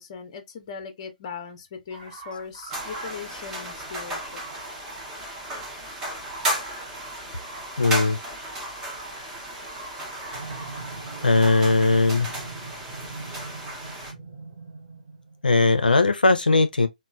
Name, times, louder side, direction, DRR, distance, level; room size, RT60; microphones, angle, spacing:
voice 1, 0.0-4.4, left 6 dB, 35° left, 0.6 m, -39 dB
sound 1, 1.9-11.6, right 2 dB, 45° right, 1.1 m, -44 dB
sound 2, 2.7-14.1, right 1 dB, 10° right, 0.7 m, -35 dB
voice 2, 7.8-8.2 11.2-12.3 15.4-16.9, left 3 dB, 85° left, 0.4 m, -19 dB
sound 3, 10.3-15.4, right 3 dB, 70° right, 0.7 m, -40 dB
3.0 x 2.1 x 2.3 m
figure-of-eight pair, 140°, 5 cm